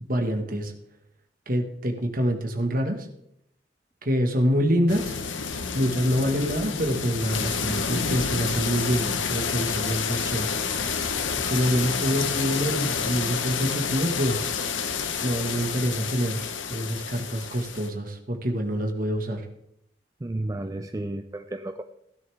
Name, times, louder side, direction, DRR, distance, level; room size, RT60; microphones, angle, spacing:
voice 1, 0.1-0.7 1.5-3.1 4.0-5.2 5.7-10.5 11.3-14.5 15.2-19.5, equal, 45° right, 4 dB, 1.6 m, -26 dB
sound 1, 4.9-17.9, left 6 dB, 75° left, 1.1 m, -29 dB
voice 2, 20.2-21.8, right 1 dB, 15° right, 7 dB, 0.4 m, -32 dB
16.0 x 10.5 x 3.5 m, 0.77 s
head